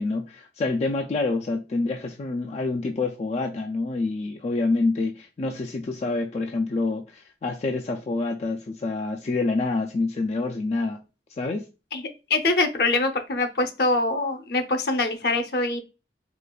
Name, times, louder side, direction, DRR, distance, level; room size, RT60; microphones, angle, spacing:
voice 1, 0.0-11.0 11.4-11.7, left 3 dB, 40° left, 0.3 m, -27 dB
voice 2, 12.3-15.8, left 2 dB, 60° left, 0.7 m, -24 dB
4.8 x 2.4 x 2.3 m
head